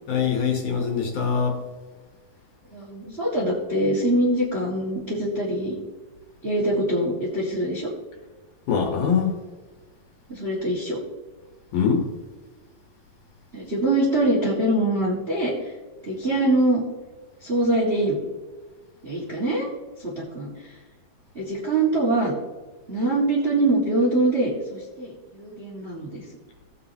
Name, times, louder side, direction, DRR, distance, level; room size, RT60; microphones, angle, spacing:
voice 1, 0.1-1.6 8.7-9.3 11.7-12.1, left 6 dB, 65° left, 2 dB, 2.5 m, -23 dB
voice 2, 2.7-5.7 6.4-7.9 10.3-11.0 13.5-15.5 16.1-16.8 17.4-18.2 19.0-19.7 20.0-20.5 21.3-22.3 22.9-26.2, right 1 dB, 25° right, -5 dB, 1.3 m, -23 dB
16.5 x 8.3 x 2.9 m, 1.3 s
omnidirectional pair, 4.3 m